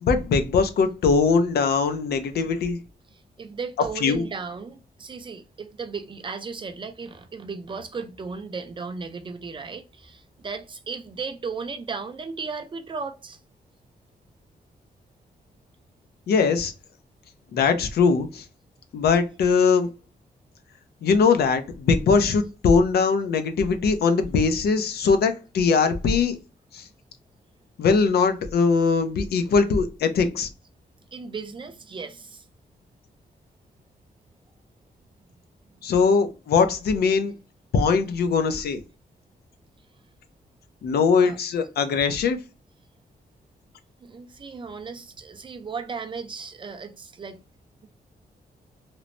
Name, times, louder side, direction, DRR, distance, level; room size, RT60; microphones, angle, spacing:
voice 1, 0.0-2.8 4.0-4.2 16.3-16.7 17.5-18.4 18.9-19.9 21.0-26.4 26.7-26.8 27.8-30.5 35.8-37.3 37.7-38.8 40.8-42.4, left 5 dB, 80° left, 0.5 m, -21 dB
voice 2, 3.1-13.4 31.1-32.4 41.2-41.4 44.0-47.4, right 5 dB, 30° right, 0.4 m, -36 dB
3.0 x 2.0 x 2.5 m
wide cardioid pair, 130°, 16 cm